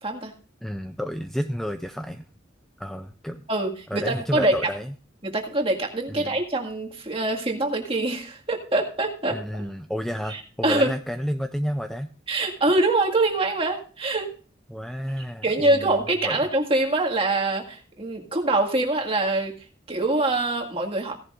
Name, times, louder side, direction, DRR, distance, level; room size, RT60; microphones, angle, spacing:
voice 1, 0.0-0.3 3.5-4.5 5.2-9.6 10.3-10.9 12.3-14.3 15.4-19.5 19.9-21.1, right 2 dB, 30° right, 1 dB, 1.9 m, -24 dB
voice 2, 0.6-2.2 2.8-3.5 3.9-4.9 6.1-6.4 9.3-12.1 14.7-16.0 16.2-16.4, equal, ahead, 8 dB, 0.4 m, -31 dB
16.5 x 11.0 x 2.5 m, 0.40 s
head